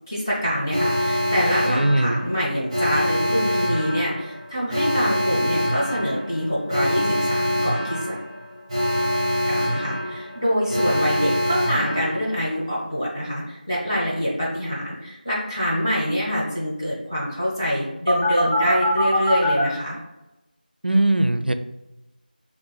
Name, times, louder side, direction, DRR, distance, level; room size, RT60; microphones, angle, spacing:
voice 1, 0.1-8.1 9.5-20.0, equal, 20° left, -8 dB, 1.1 m, -25 dB
Alarm, 0.7-12.6 18.1-19.6, equal, 15° right, 0.8 m, -24 dB
voice 2, 1.7-2.2 20.8-21.5, right 1 dB, 90° right, 9 dB, 0.4 m, -20 dB
6.1 x 2.5 x 2.3 m, 0.95 s
figure-of-eight pair, 175°, 5 cm